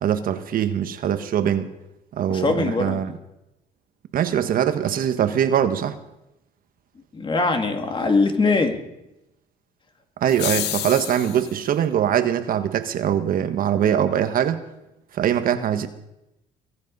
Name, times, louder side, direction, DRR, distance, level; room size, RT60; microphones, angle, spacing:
voice 1, 0.0-1.7 2.2-3.1 4.1-6.0 10.2-14.6 15.1-15.9, right 9 dB, 55° right, 9 dB, 1.3 m, -22 dB
voice 2, 2.3-3.1 7.1-8.8, left 3 dB, 30° left, 5 dB, 2.2 m, -22 dB
sound 1, 10.3-11.6, left 13 dB, 85° left, 0.9 m, -29 dB
22.5 x 10.5 x 5.4 m, 0.89 s
cardioid pair, 110°, 17 cm